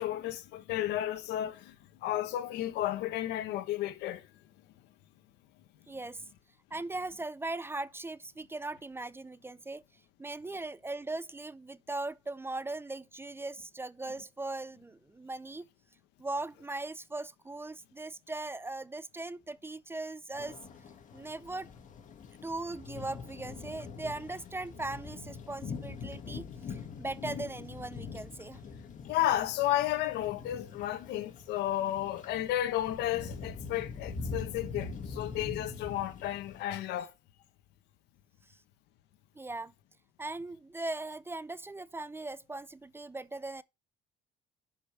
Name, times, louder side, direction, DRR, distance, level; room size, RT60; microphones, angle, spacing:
voice 1, 0.0-1.7 2.0-4.2 29.1-37.1, left 13 dB, 85° left, 1.2 m, -32 dB
voice 2, 5.9-6.2 6.7-9.8 10.2-15.7 16.2-20.6 21.1-21.7 22.4-28.6 38.5-38.6 39.3-39.7 40.2-43.6, right 2 dB, 15° right, 0.4 m, -39 dB
sound 1, 20.4-36.6, left 4 dB, 50° left, 2.1 m, -43 dB
11.0 x 5.3 x 3.4 m
cardioid pair, 110°, 17 cm